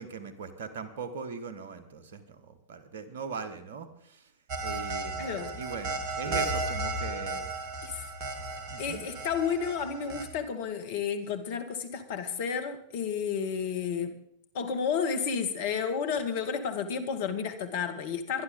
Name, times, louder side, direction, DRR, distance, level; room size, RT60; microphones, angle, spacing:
voice 1, 0.0-4.3 4.6-5.3 5.5-7.4 8.7-9.0, right 5 dB, 65° right, 11 dB, 1.6 m, -40 dB
sound 1, 4.5-10.3, right 3 dB, 45° right, 2.5 m, -34 dB
voice 2, 5.2-5.5 6.3-6.5 7.8-8.1 8.8-14.2 14.5-18.4, left 6 dB, 55° left, 8 dB, 1.9 m, -31 dB
23.0 x 11.5 x 3.9 m, 0.68 s
figure-of-eight pair, 95°, 0 cm